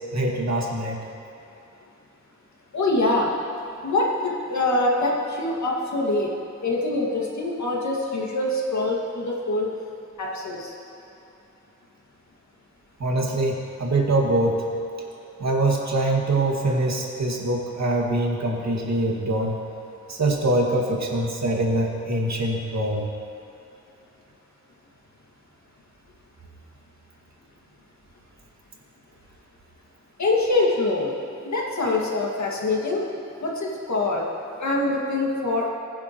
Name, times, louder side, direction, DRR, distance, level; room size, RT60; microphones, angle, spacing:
voice 1, 0.1-1.0 13.0-14.6 15.4-19.5 20.1-23.0, right 1 dB, 60° right, -1 dB, 2.0 m, -23 dB
voice 2, 2.7-3.3 3.8-6.3 6.6-9.7 10.2-10.7 30.2-31.1 31.4-33.0 33.4-34.2 34.6-35.7, left 2 dB, 70° left, -2 dB, 2.1 m, -24 dB
20.5 x 10.0 x 3.1 m, 2.8 s
wide cardioid pair, 100°, 30 cm